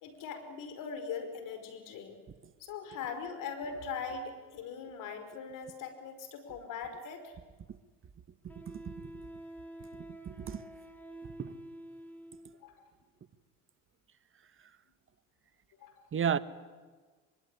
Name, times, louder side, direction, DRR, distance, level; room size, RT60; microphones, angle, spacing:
voice 1, 0.0-2.2 2.6-7.4 12.6-12.9 15.8-16.0, left 5 dB, 70° left, 5.2 m, -41 dB
voice 2, 8.4-9.1 9.9-10.6 11.4-11.6 16.1-16.4, right 8 dB, 40° right, 1.5 m, -34 dB
Wind instrument woodwind instrument, 8.5-12.6, right 1 dB, 5° left, 3.4 m, -48 dB
24.0 x 23.5 x 9.9 m
supercardioid pair, 75°, 34 cm